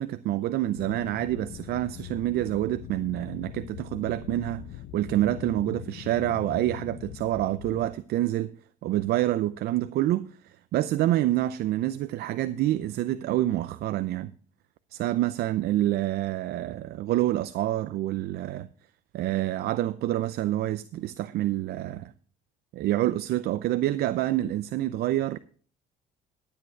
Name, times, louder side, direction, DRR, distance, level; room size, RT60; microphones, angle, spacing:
voice 1, 0.0-4.7 4.9-8.5 8.8-14.3 14.9-18.7 19.1-22.1 22.7-25.4, right 14 dB, 70° right, 0.6 m, -27 dB
sound 1, 0.7-7.9, left 11 dB, 80° left, 0.9 m, -42 dB
12.5 x 8.5 x 4.6 m
cardioid pair, 110°, 17 cm